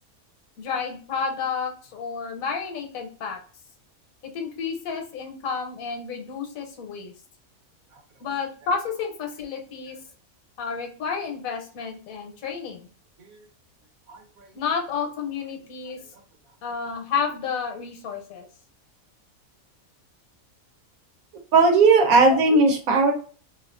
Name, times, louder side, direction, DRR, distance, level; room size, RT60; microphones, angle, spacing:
voice 1, 0.6-3.4 4.2-7.1 8.2-10.0 10.6-12.9 14.5-16.0 16.6-18.5 22.3-22.6, left 6 dB, 75° left, 4 dB, 1.0 m, -31 dB
voice 2, 21.5-23.1, right 3 dB, 75° right, 3 dB, 1.1 m, -17 dB
2.7 x 2.3 x 2.4 m, 0.40 s
omnidirectional pair, 1.5 m